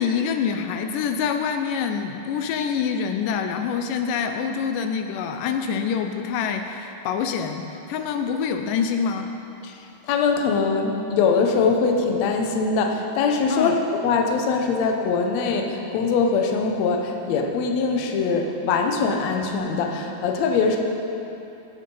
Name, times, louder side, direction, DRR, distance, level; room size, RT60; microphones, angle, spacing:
voice 1, 0.0-9.3 13.5-13.7, left 6 dB, 85° left, 6 dB, 2.3 m, -26 dB
voice 2, 10.1-13.8 14.0-20.8, left 4 dB, 65° left, 3 dB, 1.9 m, -22 dB
17.5 x 6.5 x 5.5 m, 2.9 s
omnidirectional pair, 3.7 m